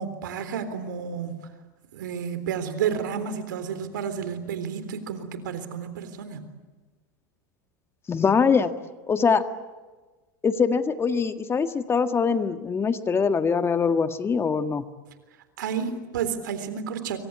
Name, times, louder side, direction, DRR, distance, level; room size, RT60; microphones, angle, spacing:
voice 1, 0.0-1.4 1.9-6.5 15.6-17.2, right 7 dB, 80° right, 11 dB, 3.6 m, -31 dB
voice 2, 8.1-8.7 9.1-9.4 10.4-14.8, left 5 dB, 25° left, 9 dB, 1.7 m, -23 dB
26.0 x 25.0 x 8.6 m, 1.3 s
hypercardioid pair, 95°, 10 cm